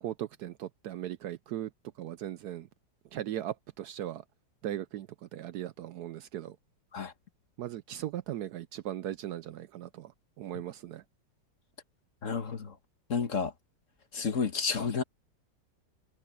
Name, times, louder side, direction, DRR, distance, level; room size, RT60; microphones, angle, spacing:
voice 1, 0.0-1.7 2.0-2.7 3.1-4.2 4.6-6.6 7.6-10.1 10.4-11.0, right 12 dB, 70° right, 1.0 m, -38 dB
voice 2, 12.2-12.7 13.1-13.5 14.1-15.0, left 5 dB, 45° left, 1.6 m, -30 dB
omnidirectional pair, 1.9 m